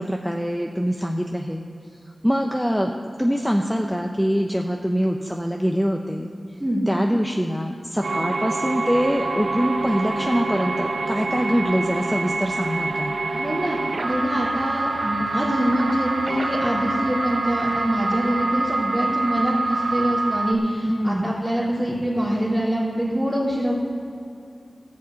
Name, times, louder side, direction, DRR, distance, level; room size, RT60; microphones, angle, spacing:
voice 1, 0.0-1.6 2.2-6.3 6.9-13.2 20.9-21.3, equal, ahead, 2 dB, 0.7 m, -24 dB
sound 1, 8.0-20.5, right 3 dB, 70° right, 0.7 m, -26 dB
voice 2, 13.3-23.7, equal, 25° right, -11 dB, 3.2 m, -24 dB
14.5 x 5.5 x 8.2 m, 2.6 s
wide cardioid pair, 75°, 0 cm